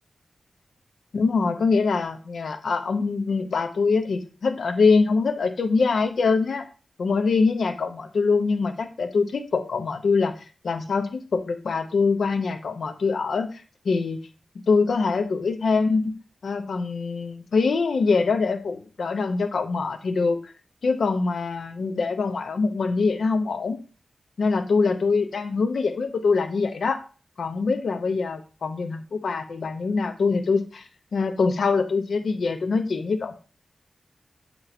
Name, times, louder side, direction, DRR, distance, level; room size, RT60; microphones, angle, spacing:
voice 1, 1.1-6.7 7.0-10.3 10.6-14.2 14.7-16.2 16.4-20.5 20.8-23.8 24.4-27.0 27.4-30.8 31.1-33.3, left 4 dB, 80° left, 7 dB, 0.9 m, -24 dB
7.8 x 3.1 x 4.1 m, 0.35 s
wide cardioid pair, 75°, 0 cm